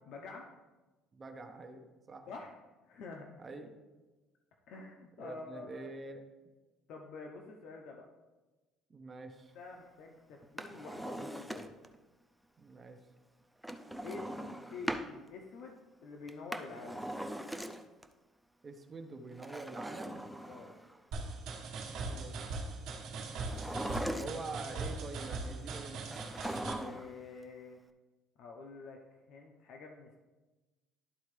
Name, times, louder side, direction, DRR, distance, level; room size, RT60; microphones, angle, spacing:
voice 1, 0.1-0.5 2.3-2.5 2.9-3.3 4.7-5.9 6.9-8.1 9.5-11.7 14.0-15.7 16.0-17.1 20.5-20.8 26.7-27.8 28.4-30.2, left 4 dB, 60° left, 1 dB, 0.8 m, -48 dB
voice 2, 1.1-2.3 3.4-3.7 5.2-6.2 8.9-9.5 12.6-13.0 18.6-20.3 22.0-22.4 24.1-26.0, right 3 dB, 25° right, 5 dB, 0.8 m, -45 dB
Drawer open or close, 10.4-11.9 13.6-15.1 16.3-18.0 19.3-21.0 23.4-24.6 26.1-27.2 27.4-27.5, right 1 dB, ahead, 0.4 m, -40 dB
sound 1, 21.1-26.7, right 3 dB, 65° right, 1.2 m, -40 dB
12.0 x 4.2 x 3.2 m, 1.2 s
cardioid pair, 150°, 0 cm